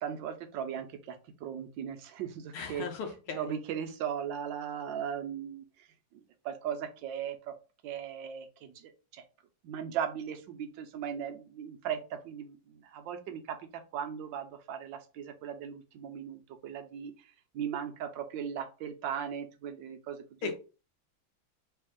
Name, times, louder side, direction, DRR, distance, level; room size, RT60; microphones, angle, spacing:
voice 1, 0.0-2.9 3.3-5.9 6.1-7.5 7.8-9.2 9.6-17.3 17.5-20.6, right 8 dB, 75° right, 7 dB, 1.3 m, -38 dB
voice 2, 2.5-3.5 20.4-20.6, left 5 dB, 90° left, 4 dB, 1.7 m, -37 dB
3.4 x 3.3 x 3.6 m, 0.33 s
omnidirectional pair, 2.3 m